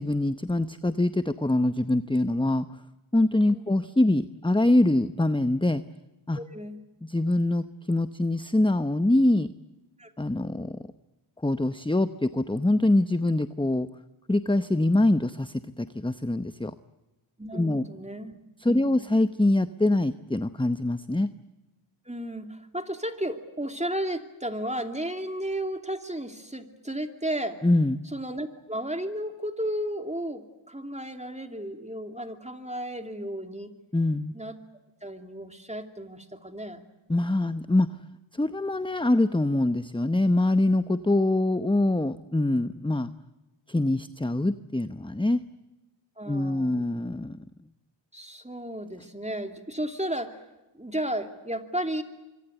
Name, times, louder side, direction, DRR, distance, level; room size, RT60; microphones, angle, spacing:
voice 1, 0.0-2.8 3.1-5.8 6.3-6.4 7.0-9.5 10.2-10.9 11.4-13.9 14.3-16.7 17.5-17.9 18.6-21.3 27.6-28.0 33.9-34.3 37.1-37.9 38.3-43.1 43.7-45.4 46.3-47.4, left 1 dB, 10° left, 11 dB, 0.8 m, -24 dB
voice 2, 6.4-6.8 10.0-10.1 17.4-18.4 18.7-19.1 22.1-27.6 28.1-33.7 34.3-34.6 35.0-36.8 46.2-46.9 48.1-50.4 50.7-52.0, right 1 dB, 15° right, 6 dB, 2.7 m, -33 dB
25.0 x 24.5 x 8.0 m, 1.1 s
wide cardioid pair, 40°, 47 cm